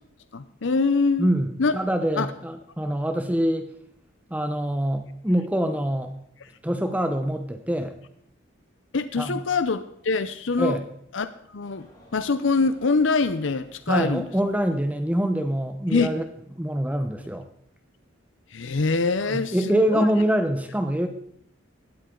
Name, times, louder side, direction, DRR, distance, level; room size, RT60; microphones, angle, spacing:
voice 1, 0.3-1.3 1.6-1.7 2.2-2.3 6.4-6.5 8.9-10.8 11.1-14.3 15.9-16.1 18.5-20.1, left 4 dB, 70° left, 12 dB, 0.7 m, -24 dB
voice 2, 1.2-3.7 4.3-6.1 6.6-7.9 9.2-9.4 10.6-10.8 13.9-16.2 16.6-17.5 19.3-21.1, right 1 dB, 10° right, 7 dB, 0.9 m, -25 dB
sound 1, 11.6-16.0, left 1 dB, 20° left, 7.3 m, -55 dB
17.5 x 13.0 x 3.9 m, 0.72 s
head